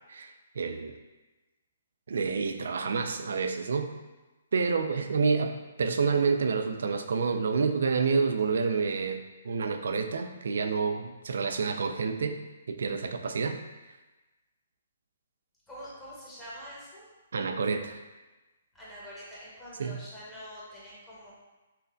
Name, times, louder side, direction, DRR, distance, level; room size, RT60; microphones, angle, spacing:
voice 1, 0.1-0.9 2.1-3.9 4.5-12.4 12.7-13.6 17.3-18.0 19.8-20.0, right 5 dB, 70° right, 6 dB, 0.3 m, -28 dB
voice 2, 15.7-17.0 18.7-21.3, equal, 15° left, -8 dB, 1.0 m, -45 dB
5.6 x 2.1 x 2.5 m, 1.1 s
figure-of-eight pair, 135°, 0 cm